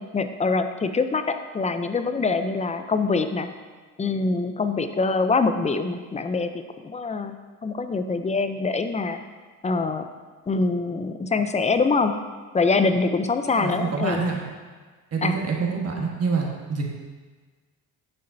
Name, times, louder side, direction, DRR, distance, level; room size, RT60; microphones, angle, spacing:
voice 1, 0.0-3.5 4.0-7.4 7.6-9.2 9.6-10.1 10.5-12.1 12.5-14.3 15.2-15.4, left 4 dB, 20° left, 9 dB, 0.5 m, -24 dB
voice 2, 13.5-14.4 15.1-16.8, right 5 dB, 40° right, -1 dB, 1.5 m, -26 dB
10.0 x 6.5 x 2.7 m, 1.4 s
cardioid pair, 85°, 37 cm